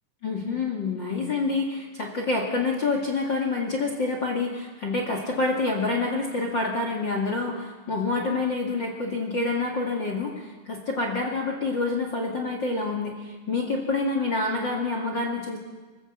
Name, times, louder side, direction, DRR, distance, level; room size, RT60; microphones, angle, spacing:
voice 1, 0.2-15.6, left 3 dB, 40° left, 1 dB, 1.7 m, -27 dB
25.0 x 15.5 x 7.5 m, 1.3 s
omnidirectional pair, 5.2 m